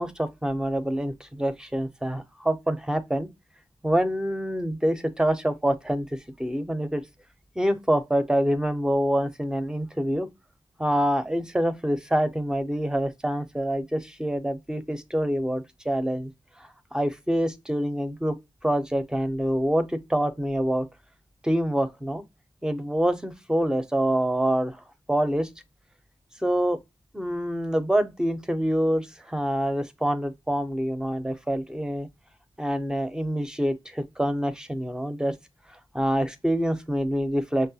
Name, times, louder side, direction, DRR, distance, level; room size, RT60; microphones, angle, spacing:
voice 1, 0.0-3.3 3.8-7.0 7.6-10.3 10.8-16.3 16.6-18.4 18.6-20.9 21.4-22.2 22.6-24.8 25.1-25.5 26.4-26.8 27.1-32.1 32.6-35.3 35.9-37.7, equal, 5° right, 0.4 m, -26 dB
5.4 x 2.1 x 2.7 m
wide cardioid pair, 140°, 10 cm